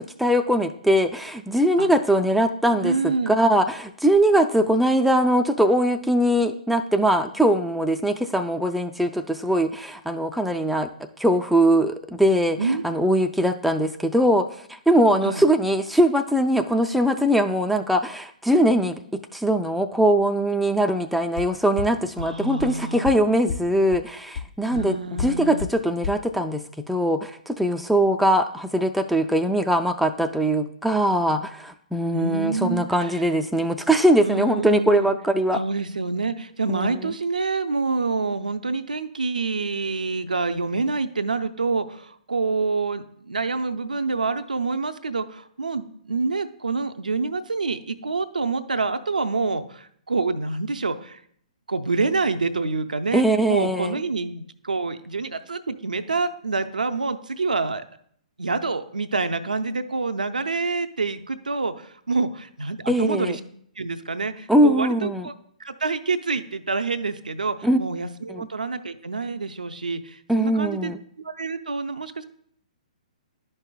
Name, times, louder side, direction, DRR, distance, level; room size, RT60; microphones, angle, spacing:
voice 1, 0.0-10.9 11.2-14.5 14.9-35.6 36.7-37.1 53.1-54.0 62.9-63.4 64.5-65.3 67.6-67.8 68.3-68.5 70.3-71.0, right 1 dB, ahead, 5 dB, 0.3 m, -21 dB
voice 2, 2.8-3.3 12.6-12.8 15.2-15.4 22.2-23.1 24.7-25.7 32.1-33.3 34.2-35.1 35.5-51.2 51.7-57.8 58.4-63.4 63.8-65.3 65.6-70.9 71.2-72.3, right 4 dB, 80° right, 9 dB, 0.5 m, -27 dB
sound 1, 21.4-21.5 21.8-21.9 22.2-22.3 22.6-22.7 23.0-23.1 23.5-23.6 23.9-24.0 24.3-24.4 24.7-24.8 25.2-25.3 25.6-25.7 26.0-26.1, left 6 dB, 60° left, 0.9 m, -28 dB
11.0 x 5.4 x 2.2 m, 0.64 s
figure-of-eight pair, 125°, 4 cm